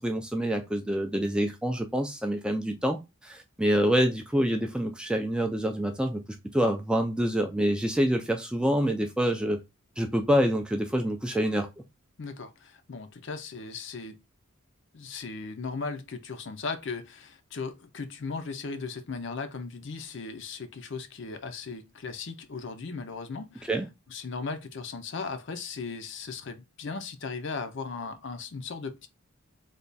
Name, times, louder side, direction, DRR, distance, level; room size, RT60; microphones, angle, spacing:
voice 1, 0.0-6.2 6.5-9.6 10.0-11.7 23.7-23.9, equal, 5° right, 0.3 m, -26 dB
voice 2, 12.2-14.2 14.9-23.7 24.1-29.1, left 4 dB, 55° left, 0.5 m, -37 dB
3.3 x 2.3 x 3.9 m
head